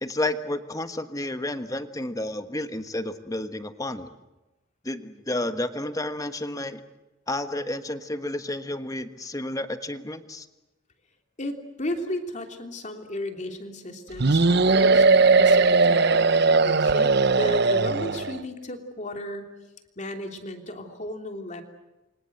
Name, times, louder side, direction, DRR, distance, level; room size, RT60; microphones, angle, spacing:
voice 1, 0.0-4.1 4.8-6.8 7.3-10.5, left 1 dB, 15° left, 9 dB, 1.4 m, -31 dB
voice 2, 11.4-19.5 20.0-21.6, left 1 dB, 40° left, 4 dB, 3.2 m, -34 dB
sound 1, 14.2-18.4, right 3 dB, 55° right, 0.9 m, -19 dB
30.0 x 25.0 x 7.9 m, 1.0 s
head